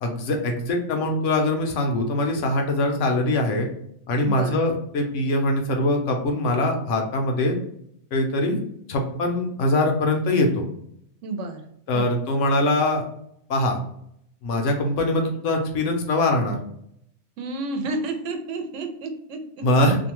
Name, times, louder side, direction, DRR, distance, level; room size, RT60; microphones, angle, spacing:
voice 1, 0.0-3.7 4.1-7.5 8.1-8.6 8.9-10.6 11.9-13.0 13.5-13.8 14.4-16.6 19.6-20.0, left 1 dB, 85° left, 3 dB, 1.0 m, -22 dB
voice 2, 4.2-4.7 11.2-12.1 17.4-19.7, right 3 dB, 85° right, 5 dB, 0.9 m, -31 dB
2.7 x 2.2 x 2.9 m, 0.72 s
omnidirectional pair, 1.2 m